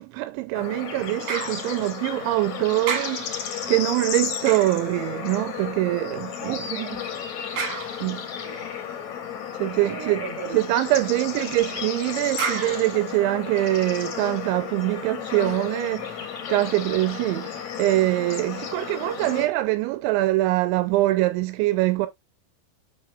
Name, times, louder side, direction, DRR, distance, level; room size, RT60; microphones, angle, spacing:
voice 1, 0.0-6.6 8.0-8.2 9.5-10.2 10.5-22.1, right 18 dB, 85° right, 2.9 m, -24 dB
Bird / Insect / Frog, 0.5-19.4, left 8 dB, 55° left, 2.2 m, -33 dB
sound 1, 1.3-2.5 2.8-5.7 7.6-8.5 12.4-13.8 14.4-14.5, right 6 dB, 60° right, 2.8 m, -34 dB
voice 2, 6.2-7.2 8.4-8.7 9.6-10.6 10.9-11.0, right 9 dB, 40° right, 3.1 m, -36 dB
7.4 x 6.0 x 2.3 m
omnidirectional pair, 5.3 m